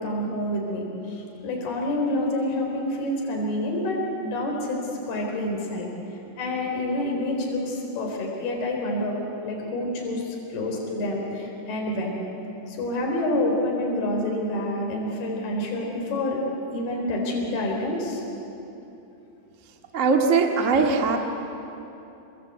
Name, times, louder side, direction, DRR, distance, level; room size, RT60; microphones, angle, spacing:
voice 1, 0.0-5.9 6.4-12.2 12.7-16.4 16.7-18.2, left 1 dB, 60° left, -1 dB, 6.0 m, -28 dB
voice 2, 19.9-21.2, right 4 dB, 60° right, 2 dB, 0.8 m, -20 dB
28.5 x 23.5 x 8.2 m, 3.0 s
omnidirectional pair, 5.1 m